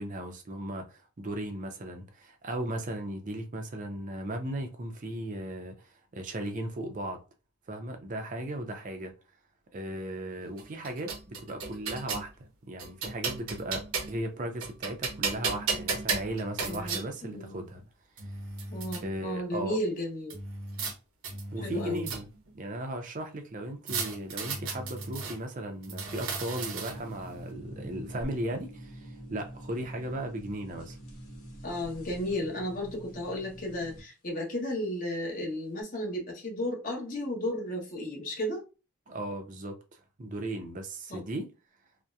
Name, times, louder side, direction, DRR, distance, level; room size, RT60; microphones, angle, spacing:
voice 1, 0.0-7.2 7.7-9.1 9.7-12.3 12.7-17.8 18.2-18.3 19.0-19.8 21.5-22.3 22.5-31.0 39.1-39.8 40.2-41.5, right 1 dB, 35° right, 0.5 m, -36 dB
sound 1, 10.6-12.3 12.8-14.3 14.6-17.0 17.8-17.9 18.2-19.0 20.3-20.9 21.2-22.5 23.9-25.4 25.8-27.2, right 4 dB, 70° right, 0.7 m, -34 dB
voice 2, 16.6-17.6 18.7-20.4 21.6-22.0 31.6-38.6 41.1-41.2, left 1 dB, 40° left, 0.9 m, -34 dB
sound 2, 26.9-34.0, right 1 dB, 70° left, 1.1 m, -46 dB
2.7 x 2.1 x 2.3 m
head